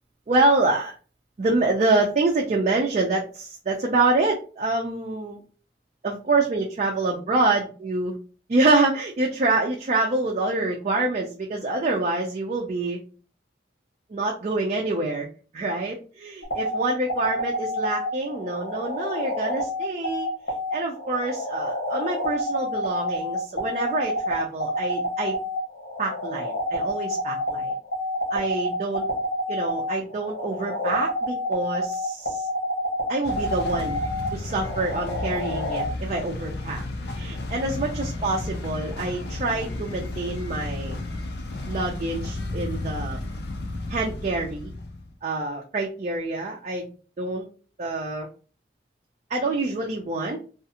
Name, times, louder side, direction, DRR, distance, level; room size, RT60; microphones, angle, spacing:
voice 1, 0.3-0.9 1.4-5.4 6.0-8.1 8.5-13.0 14.1-15.3 15.5-20.3 20.7-25.3 26.0-27.7 28.3-29.1 29.5-32.5 33.1-34.0 34.3-36.8 37.2-41.0 41.7-43.2 43.9-44.7 45.2-46.9 47.2-47.5 47.8-48.3 49.3-50.4, right 2 dB, 40° right, 0 dB, 0.4 m, -26 dB
sound 1, 16.4-35.9, left 1 dB, 75° left, 1.1 m, -29 dB
sound 2, 33.2-45.1, left 2 dB, 60° left, 0.5 m, -33 dB
2.4 x 2.4 x 2.7 m, 0.37 s
head